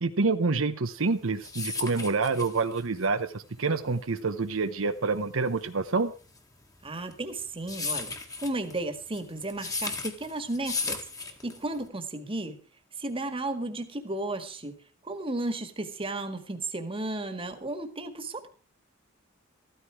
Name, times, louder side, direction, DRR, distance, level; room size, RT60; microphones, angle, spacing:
voice 1, 0.0-6.1, right 4 dB, 70° right, 9 dB, 0.9 m, -27 dB
sound 1, 1.1-11.9, left 4 dB, 15° left, 1.8 m, -36 dB
voice 2, 6.8-8.1 8.4-12.6 13.0-14.7 15.0-18.5, right 2 dB, 25° right, 8 dB, 1.8 m, -34 dB
14.5 x 13.5 x 4.7 m, 0.37 s
head